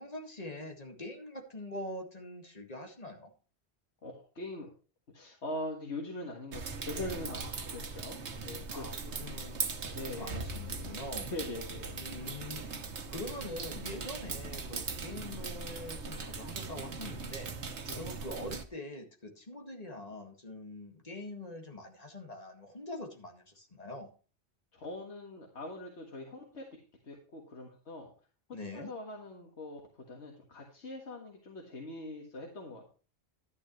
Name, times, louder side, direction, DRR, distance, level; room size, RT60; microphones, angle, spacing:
voice 1, 0.0-3.3 8.7-9.7 10.1-11.3 11.9-12.8 13.1-17.5 18.0-24.1 28.5-28.9, left 1 dB, 35° left, 3 dB, 2.0 m, -44 dB
voice 2, 4.0-4.7 5.1-8.2 8.5-9.1 9.9-10.5 11.3-12.3 17.9-18.1 24.7-28.1 28.7-32.9, left 1 dB, 85° left, 1 dB, 2.0 m, -42 dB
sound 1, 6.5-18.6, right 4 dB, 90° right, 1.4 m, -40 dB
12.0 x 9.9 x 3.1 m, 0.36 s
omnidirectional pair, 1.1 m